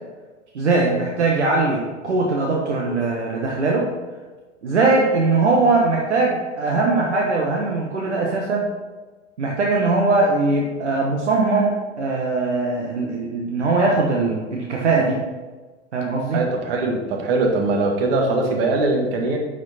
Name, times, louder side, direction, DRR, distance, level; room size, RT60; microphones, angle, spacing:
voice 1, 0.5-3.9 4.6-8.7 9.4-15.2 15.9-16.4, right 3 dB, 70° right, -1 dB, 1.4 m, -20 dB
voice 2, 16.3-19.4, right 2 dB, 50° right, 1 dB, 1.8 m, -21 dB
10.5 x 5.1 x 4.3 m, 1.3 s
figure-of-eight pair, 95°, 36 cm